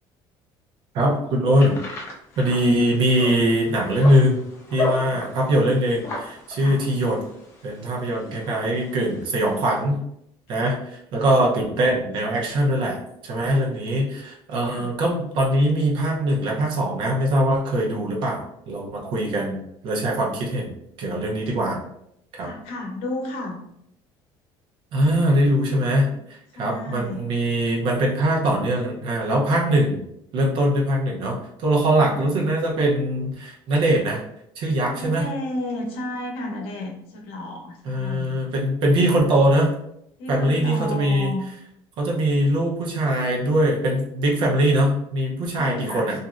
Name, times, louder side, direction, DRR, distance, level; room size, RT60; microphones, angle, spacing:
voice 1, 0.9-1.8 2.4-4.4 4.7-7.2 7.6-10.0 10.5-10.7 11.1-13.0 13.2-21.8 22.4-22.5 24.9-30.0 30.3-34.2 34.6-35.3 37.8-39.7 40.3-41.3 42.0-46.2, right 1 dB, 50° right, -1 dB, 0.7 m, -22 dB
sound 1, 1.6-9.8, left 3 dB, 25° left, 0.5 m, -35 dB
voice 2, 2.3-2.8 5.0-5.2 6.5-6.8 10.5-10.8 14.6-14.9 22.4-23.6 26.5-27.3 32.0-32.2 34.9-38.4 40.2-41.4 45.5-46.2, left 1 dB, 75° left, 1 dB, 0.7 m, -33 dB
3.0 x 2.6 x 2.4 m, 0.76 s
cardioid pair, 180°, 10 cm